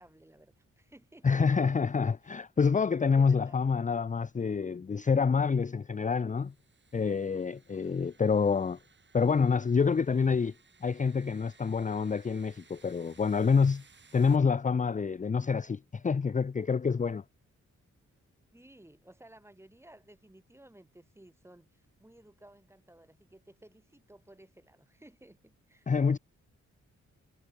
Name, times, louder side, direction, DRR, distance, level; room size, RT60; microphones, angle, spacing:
voice 1, 0.0-1.7 2.2-2.4 3.1-3.8 7.8-8.3 18.5-25.9, right 1 dB, 10° right, 3.0 m, -57 dB
voice 2, 1.2-6.5 6.9-8.8 9.1-10.5 10.8-13.8 14.1-17.2 25.9-26.2, left 5 dB, 25° left, 0.6 m, -27 dB
sound 1, 6.4-14.4, right 5 dB, 40° right, 2.7 m, -62 dB
wide cardioid pair, 105°, 29 cm